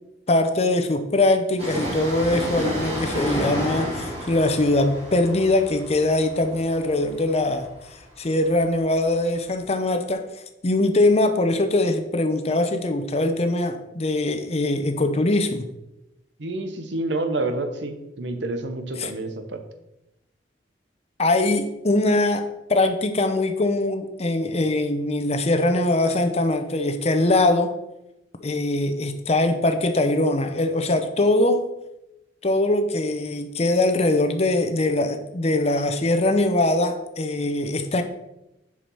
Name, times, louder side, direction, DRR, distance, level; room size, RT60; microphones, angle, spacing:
voice 1, 0.3-10.3 10.6-15.7 19.0-19.1 21.2-27.7 28.4-31.7 32.4-38.0, left 2 dB, 35° left, 8 dB, 0.8 m, -22 dB
Train, 1.6-9.0 9.3-9.4, equal, 35° right, 2.7 m, -31 dB
voice 2, 16.4-19.6, right 2 dB, 70° right, 7 dB, 0.9 m, -28 dB
7.1 x 5.0 x 5.5 m, 0.91 s
head